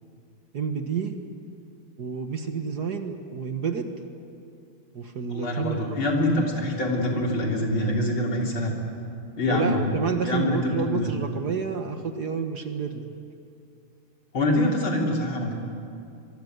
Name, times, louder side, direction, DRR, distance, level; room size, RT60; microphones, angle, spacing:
voice 1, 0.5-1.2 2.0-3.9 4.9-6.0 9.5-13.1, right 5 dB, 50° right, 6 dB, 1.8 m, -29 dB
voice 2, 5.3-8.7 9.4-9.8 10.2-11.1 14.3-15.5, left 1 dB, 70° left, -1 dB, 4.4 m, -25 dB
25.0 x 23.5 x 8.1 m, 2.5 s
omnidirectional pair, 2.4 m